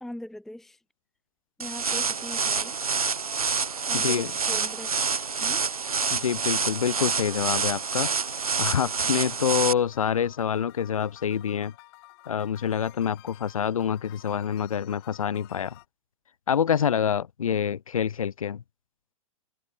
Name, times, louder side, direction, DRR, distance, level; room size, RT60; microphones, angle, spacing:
voice 1, 0.0-0.8 1.6-2.8 3.9-4.9 5.4-5.6, left 1 dB, ahead, 0.8 m, -40 dB
sound 1, 1.6-9.7, right 5 dB, 80° right, 0.7 m, -27 dB
voice 2, 3.9-4.3 6.1-8.1 8.6-11.7 12.3-15.8 16.5-18.6, left 8 dB, 70° left, 0.6 m, -26 dB
sound 2, 6.4-15.9, left 23 dB, 45° left, 5.1 m, -53 dB
figure-of-eight pair, 105°, 18 cm